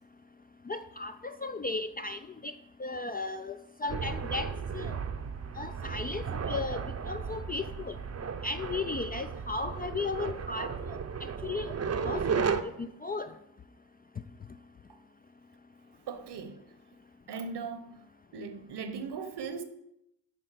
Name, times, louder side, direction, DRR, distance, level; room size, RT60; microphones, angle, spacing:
voice 1, 0.7-2.5 2.8-5.0 5.6-7.9 8.4-11.0 11.4-11.8 12.0-12.2 12.6-13.3, left 3 dB, 20° left, 0.4 m, -35 dB
sound 1, 3.9-12.6, right 6 dB, 30° right, 0.7 m, -34 dB
voice 2, 16.1-16.7 17.3-18.1 18.3-19.6, right 5 dB, 55° right, 1.1 m, -39 dB
9.7 x 3.8 x 5.0 m
hypercardioid pair, 45°, 49 cm